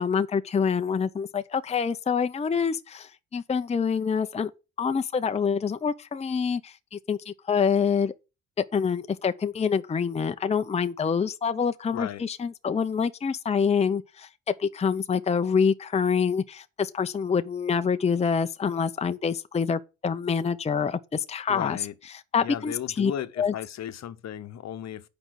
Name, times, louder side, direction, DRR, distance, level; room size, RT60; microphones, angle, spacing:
voice 1, 0.0-4.5 4.8-8.1 8.6-14.3 14.6-21.8 22.3-23.1 23.4-23.5, left 6 dB, 20° left, 0.6 m, -26 dB
voice 2, 11.9-12.2 21.5-21.9 22.4-25.1, left 10 dB, 60° left, 0.9 m, -35 dB
8.6 x 5.2 x 6.3 m
cardioid pair, 90°, 30 cm